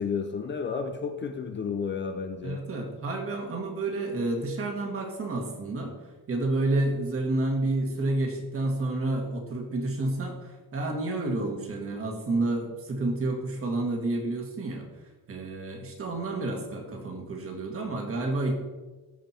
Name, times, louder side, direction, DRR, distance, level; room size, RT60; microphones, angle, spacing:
voice 1, 0.0-2.6, left 5 dB, 30° left, 6 dB, 0.6 m, -32 dB
voice 2, 2.4-5.9 6.3-14.9 15.3-18.5, right 2 dB, 35° right, 2 dB, 2.0 m, -30 dB
14.5 x 5.2 x 4.4 m, 1.2 s
cardioid pair, 145°, 37 cm